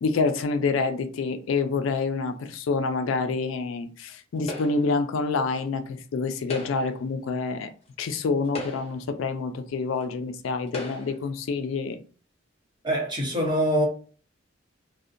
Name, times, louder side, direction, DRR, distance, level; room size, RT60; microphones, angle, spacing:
voice 1, 0.0-7.7 8.0-12.0, left 4 dB, 80° left, 0.3 m, -27 dB
sound 1, 4.5-5.0 6.4-7.0 7.9-8.0 8.4-9.1 10.0-10.1 10.7-11.3, left 2 dB, 30° left, 0.7 m, -37 dB
voice 2, 12.8-13.9, equal, 25° right, 0.8 m, -24 dB
2.6 x 2.1 x 2.5 m
head